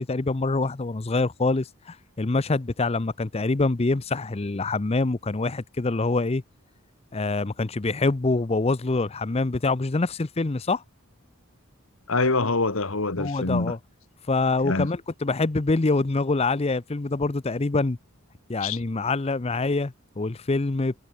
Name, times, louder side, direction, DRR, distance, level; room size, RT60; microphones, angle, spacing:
voice 1, 0.0-6.4 7.1-10.8 13.2-13.8 14.3-18.0 18.5-20.9, left 3 dB, 30° left, 0.6 m, -25 dB
voice 2, 12.1-13.7 14.6-14.9 18.6-18.8, left 3 dB, 70° left, 1.8 m, -25 dB
head